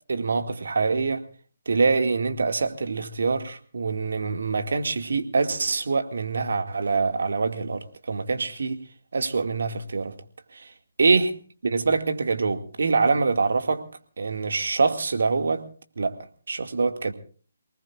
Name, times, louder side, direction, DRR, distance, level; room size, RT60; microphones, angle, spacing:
voice 1, 0.1-1.2 1.7-8.8 9.1-10.1 10.5-10.7 11.0-11.3 11.6-13.8 14.2-15.6 16.0-16.2 16.5-17.1, right 4 dB, 70° right, 2.2 m, -24 dB
28.5 x 19.5 x 2.5 m
hypercardioid pair, 165°, 0 cm